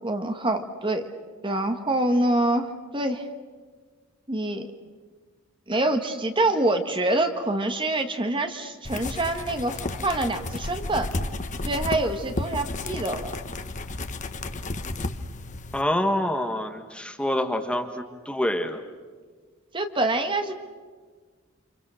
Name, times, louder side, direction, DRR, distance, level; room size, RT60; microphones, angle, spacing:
voice 1, 0.0-1.1 1.4-3.3 4.3-4.7 5.7-11.1 11.6-13.3 19.7-20.6, right 2 dB, 25° right, 6 dB, 1.6 m, -26 dB
sound 1, 8.8-15.8, left 2 dB, 35° left, 1.1 m, -32 dB
voice 2, 15.7-18.8, left 1 dB, 5° left, 5 dB, 1.5 m, -26 dB
30.0 x 27.0 x 6.4 m, 1.5 s
head